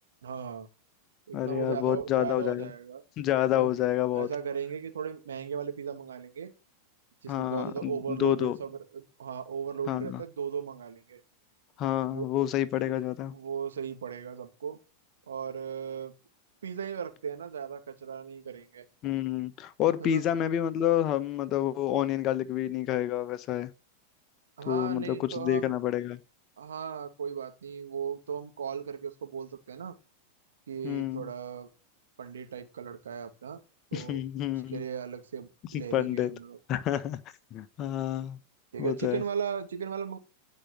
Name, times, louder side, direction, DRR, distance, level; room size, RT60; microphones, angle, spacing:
voice 1, 0.2-0.7 1.3-3.0 3.5-3.8 4.1-6.5 7.2-11.2 12.1-12.3 13.3-14.8 15.3-16.1 16.6-18.8 20.0-20.2 24.6-25.7 26.6-29.9 30.7-31.7 32.2-33.6 33.9-34.2 34.7-36.6 38.7-40.2, right 7 dB, 65° right, 2.4 m, -37 dB
voice 2, 1.3-2.7 3.2-4.3 7.3-8.6 9.9-10.2 11.8-13.3 19.0-23.7 24.7-26.2 30.8-31.3 33.9-34.8 35.9-36.3 36.7-37.2 37.5-38.4 38.8-39.2, left 12 dB, 35° left, 1.2 m, -28 dB
16.0 x 5.4 x 9.0 m
figure-of-eight pair, 90°, 0 cm